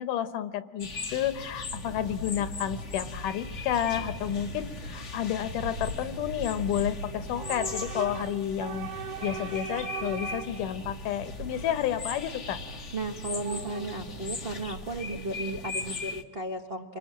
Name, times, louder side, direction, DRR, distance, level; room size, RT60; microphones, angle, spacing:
voice 1, 0.0-8.9 9.2-12.6, left 10 dB, 80° left, 12 dB, 2.6 m, -31 dB
sound 1, 0.8-16.2, left 4 dB, 55° left, 0.7 m, -40 dB
Train / Subway metro underground, 1.2-16.0, right 3 dB, 55° right, 2.0 m, -40 dB
voice 2, 12.9-17.0, right 2 dB, 40° right, 3 dB, 0.7 m, -34 dB
29.5 x 25.0 x 7.5 m, 1.3 s
omnidirectional pair, 3.7 m